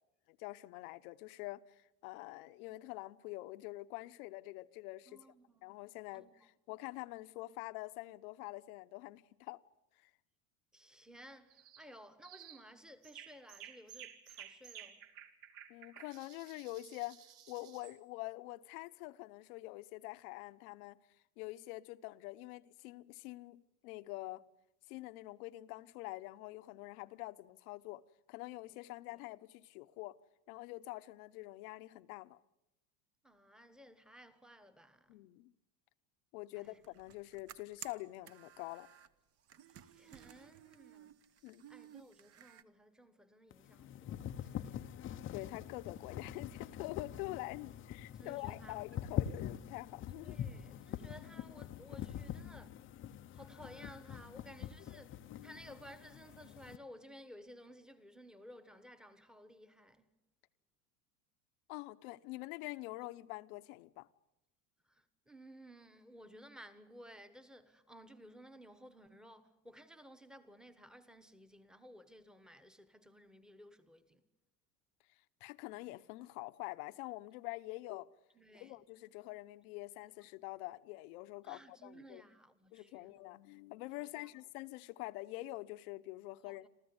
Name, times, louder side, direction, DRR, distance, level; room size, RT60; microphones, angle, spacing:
voice 1, 0.3-5.2 5.6-6.3 6.7-9.6 10.0-10.1 15.7-21.0 21.4-24.4 24.9-28.0 28.3-30.2 30.5-32.4 35.1-35.5 36.3-38.9 41.4-41.7 45.3-50.4 55.3-55.6 61.7-64.1 75.4-78.1 78.6-82.2 82.7-86.7, left 19 dB, 65° left, 1.0 m, -46 dB
voice 2, 5.1-5.8 6.1-6.3 10.7-15.1 28.7-28.8 29.1-29.2 33.2-35.3 36.5-36.8 39.7-41.2 41.7-44.9 48.2-48.8 50.2-52.8 53.3-60.1 64.8-74.2 78.3-78.8 81.4-83.1 84.0-84.3 86.5-86.7, equal, ahead, 1.3 m, -57 dB
sound 1, 11.5-11.9 12.2-12.6 13.0-18.0, right 10 dB, 60° right, 2.9 m, -54 dB
sound 2, 36.6-39.1 39.4-42.6, right 10 dB, 30° right, 1.0 m, -56 dB
sound 3, 43.5-56.8, left 10 dB, 25° left, 0.7 m, -44 dB
27.5 x 14.5 x 9.7 m
supercardioid pair, 145°, 47 cm